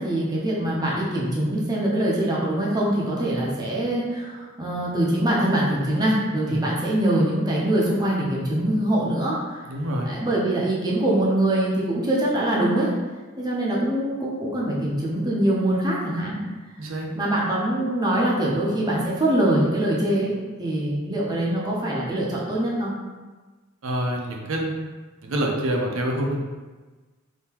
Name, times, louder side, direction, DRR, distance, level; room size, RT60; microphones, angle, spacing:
voice 1, 0.0-9.6 10.1-12.9 13.4-16.4 17.1-22.9, right 1 dB, 20° right, -5 dB, 0.6 m, -23 dB
voice 2, 9.7-10.1 16.8-17.1 23.8-24.7 25.2-26.4, right 1 dB, 70° right, 1 dB, 0.6 m, -26 dB
3.7 x 2.7 x 2.8 m, 1.3 s
head